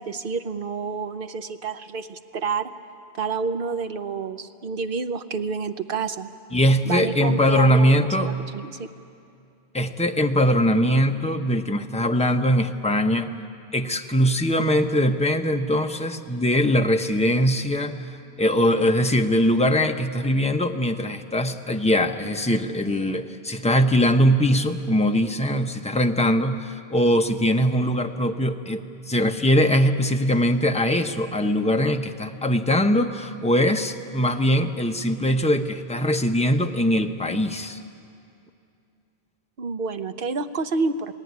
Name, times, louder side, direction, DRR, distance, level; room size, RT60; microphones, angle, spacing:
voice 1, 0.0-2.7 3.2-6.3 6.8-8.9 39.6-41.1, right 4 dB, 60° right, 10 dB, 1.1 m, -29 dB
voice 2, 6.5-8.3 9.7-13.3 13.7-37.8, equal, 5° left, 5 dB, 0.9 m, -21 dB
27.0 x 18.0 x 9.5 m, 2.5 s
omnidirectional pair, 1.1 m